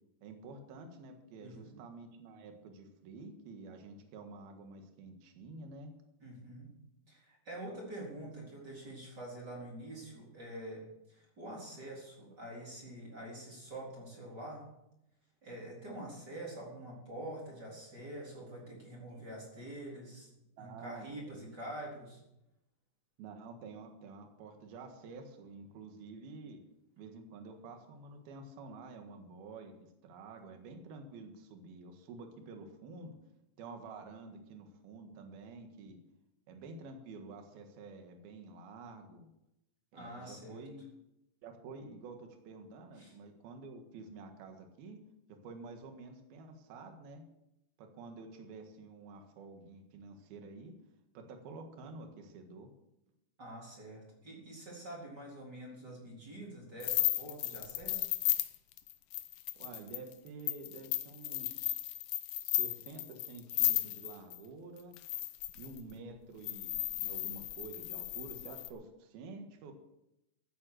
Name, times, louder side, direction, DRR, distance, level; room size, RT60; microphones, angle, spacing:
voice 1, 0.2-5.9 19.1-19.2 20.6-21.6 23.2-26.6 27.0-33.2 33.6-36.0 36.5-39.3 39.9-40.9 41.4-45.0 45.3-47.2 47.8-50.7 51.2-52.7 59.6-61.8 62.4-65.0 65.6-69.7, right 3 dB, 65° right, 5 dB, 3.4 m, -49 dB
voice 2, 1.4-1.8 6.2-6.7 7.1-14.6 15.4-20.3 20.6-22.2 39.9-40.6 43.0-43.1 53.4-58.1, right 1 dB, 25° right, -3 dB, 4.1 m, -46 dB
sound 1, 56.8-64.4 64.9-65.8 66.4-68.7, left 15 dB, 85° left, 1.9 m, -34 dB
16.0 x 9.2 x 6.5 m, 0.86 s
omnidirectional pair, 4.8 m